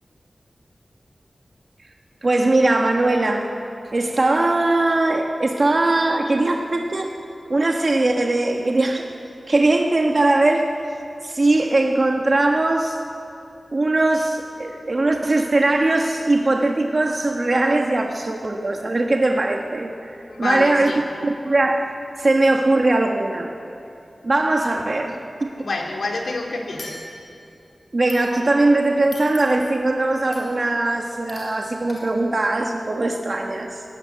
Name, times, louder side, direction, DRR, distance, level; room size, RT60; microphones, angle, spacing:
voice 1, 2.2-3.5 3.9-7.1 7.5-9.1 9.5-10.7 11.2-13.0 13.7-20.9 21.2-21.9 22.2-23.5 24.2-25.5 27.9-33.8, right 2 dB, 45° right, 2 dB, 1.3 m, -20 dB
voice 2, 20.3-21.0 25.6-27.0, left 2 dB, 85° left, 1 dB, 3.0 m, -27 dB
sound 1, 26.8-27.5 28.1-28.7 29.1-29.8 30.3-30.7 31.3-31.6 31.9-32.0, left 2 dB, 60° left, 5.0 m, -41 dB
18.5 x 17.5 x 9.3 m, 2.7 s
wide cardioid pair, 100°, 0 cm